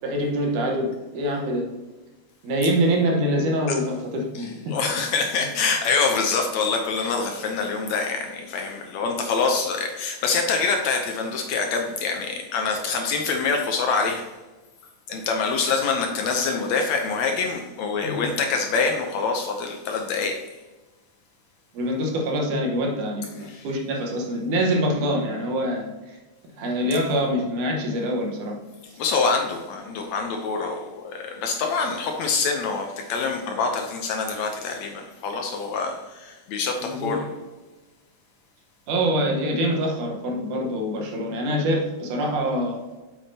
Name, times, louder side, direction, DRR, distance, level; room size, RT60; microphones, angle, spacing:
voice 1, 0.0-1.7 2.4-4.9 18.0-18.3 21.7-26.2 26.6-28.6 36.8-37.2 38.9-42.8, equal, 75° right, 0 dB, 2.7 m, -25 dB
voice 2, 4.3-14.3 15.1-20.4 23.5-23.7 29.0-37.2, left 4 dB, 70° left, 3 dB, 1.8 m, -25 dB
8.1 x 7.3 x 2.8 m, 1.2 s
omnidirectional pair, 3.7 m